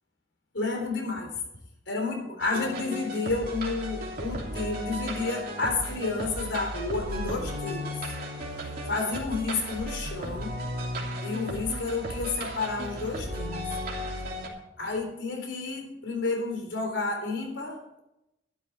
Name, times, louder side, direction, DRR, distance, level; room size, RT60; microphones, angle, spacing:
voice 1, 0.5-1.3 1.9-7.9 8.9-10.5 11.2-13.6 14.8-18.0, left 3 dB, 70° left, 2 dB, 3.8 m, -31 dB
sound 1, 2.4-14.5, equal, 50° right, 3.2 m, -35 dB
12.5 x 12.5 x 4.7 m, 0.87 s
head